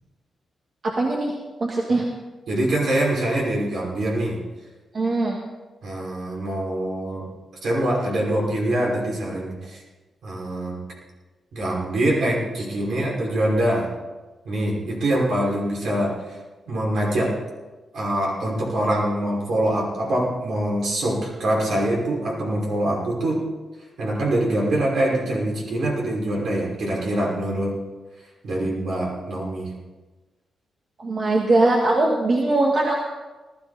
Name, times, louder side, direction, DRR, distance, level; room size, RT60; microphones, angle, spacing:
voice 1, 0.8-1.3 1.6-2.0 4.9-5.4 31.0-33.0, right 2 dB, 45° right, -1 dB, 2.1 m, -21 dB
voice 2, 2.5-4.4 5.8-7.3 7.6-9.8 10.2-10.8 11.5-13.9 14.4-16.4 16.7-17.3 17.9-23.4 24.0-27.7 28.4-29.7, right 1 dB, 75° right, -3 dB, 5.7 m, -24 dB
19.5 x 13.5 x 4.3 m, 1.2 s
cardioid pair, 100°, 0 cm